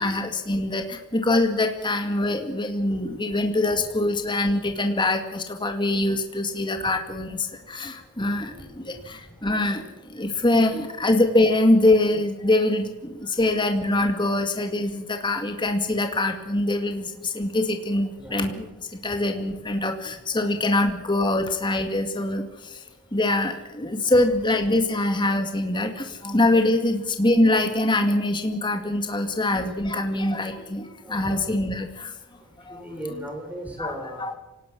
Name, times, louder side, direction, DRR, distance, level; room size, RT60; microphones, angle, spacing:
voice 1, 0.0-9.8 10.1-18.7 19.0-22.4 23.1-32.1 32.7-33.2 33.8-34.3, left 2 dB, 20° left, 4 dB, 2.2 m, -24 dB
voice 2, 18.2-18.6 31.0-31.6 32.7-34.4, right 1 dB, 5° right, 2 dB, 4.3 m, -37 dB
26.5 x 18.5 x 6.3 m, 1.0 s
head